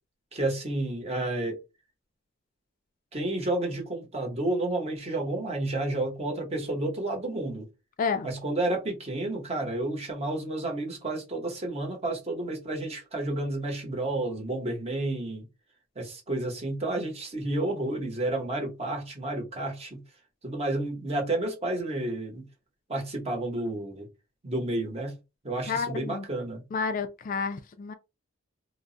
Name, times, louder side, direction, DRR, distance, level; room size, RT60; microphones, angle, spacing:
voice 1, 0.3-1.6 3.1-7.7 8.2-15.4 16.0-20.0 20.4-22.4 22.9-24.1 24.4-25.2 25.4-26.6, right 2 dB, 30° right, 0.9 m, -31 dB
voice 2, 25.7-26.2 26.7-27.9, left 5 dB, 40° left, 0.3 m, -30 dB
2.3 x 2.0 x 3.7 m
head